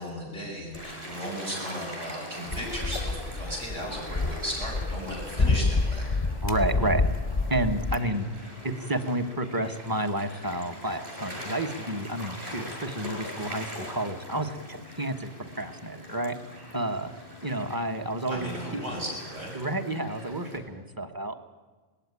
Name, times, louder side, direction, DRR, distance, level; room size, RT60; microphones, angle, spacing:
voice 1, 0.0-6.1 18.3-19.7, equal, 85° right, -2 dB, 7.2 m, -36 dB
Gull seagull / Waves surf, 0.7-20.6, left 1 dB, 45° right, 5.8 m, -42 dB
sound 1, 2.5-8.0, left 3 dB, 25° left, 0.7 m, -28 dB
voice 2, 6.4-7.0 7.5-8.3 8.6-16.3 16.7-17.1 17.4-19.0 19.5-21.4, right 1 dB, 20° right, 7 dB, 1.1 m, -30 dB
19.5 x 15.5 x 9.7 m, 1.4 s
omnidirectional pair, 1.2 m